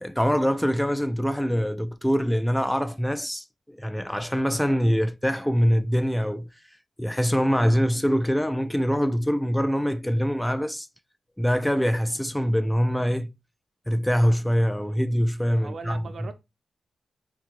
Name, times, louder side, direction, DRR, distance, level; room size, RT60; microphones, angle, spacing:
voice 1, 0.0-6.5 7.0-10.9 11.4-13.3 13.9-16.0, equal, 5° left, 0.3 m, -24 dB
voice 2, 14.8-15.1 15.6-16.3, right 4 dB, 60° right, 0.7 m, -40 dB
3.7 x 2.6 x 2.9 m
cardioid pair, 80°, 0 cm